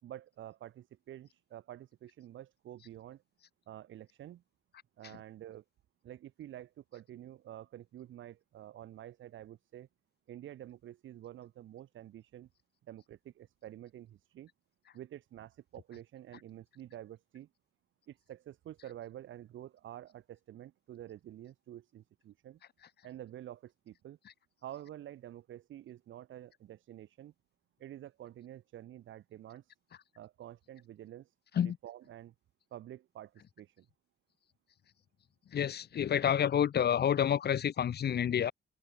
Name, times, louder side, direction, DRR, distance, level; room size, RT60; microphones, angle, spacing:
voice 1, 0.0-3.2 3.7-4.4 5.0-5.6 6.0-9.9 10.3-12.5 12.9-14.5 14.9-17.5 18.1-22.6 23.0-24.2 24.6-27.3 27.8-29.7 30.2-31.3 31.6-32.3 32.7-33.9, right 12 dB, 75° right, 5.7 m, -49 dB
voice 2, 35.5-38.5, left 9 dB, 55° left, 1.5 m, -29 dB
cardioid pair, 90°, 20 cm